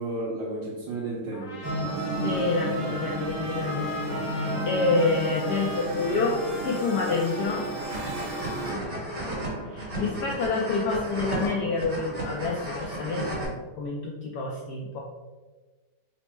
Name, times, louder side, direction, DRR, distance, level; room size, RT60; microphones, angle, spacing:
voice 1, 0.0-1.9 4.4-4.6 8.6-9.0 10.0-10.1, right 2 dB, 80° right, -5 dB, 1.4 m, -34 dB
Trumpet, 1.3-8.7, left 3 dB, 50° left, 1.2 m, -40 dB
sound 1, 1.6-8.7, right 1 dB, 55° right, 1.4 m, -32 dB
voice 2, 2.2-6.3 6.6-7.6 9.7-15.0, left 3 dB, 70° left, -2 dB, 1.1 m, -28 dB
sound 2, 7.5-13.4, right 1 dB, 35° right, 1.3 m, -34 dB
4.2 x 2.1 x 4.4 m, 1.2 s
omnidirectional pair, 2.0 m